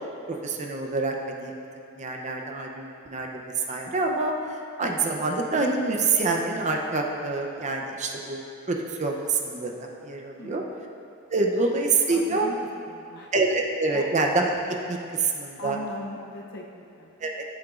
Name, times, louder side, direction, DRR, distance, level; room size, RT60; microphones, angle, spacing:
voice 1, 0.3-1.5 1.9-3.3 3.7-4.3 4.8-8.4 8.7-10.6 11.3-12.5 13.3-15.8 17.2-17.4, right 3 dB, 35° right, 1 dB, 0.6 m, -26 dB
voice 2, 10.4-10.8 11.6-11.7 12.1-12.6 12.9-13.3 13.9-14.1 15.6-17.2, left 1 dB, 50° left, -1 dB, 0.6 m, -39 dB
12.5 x 7.8 x 2.4 m, 2.5 s
head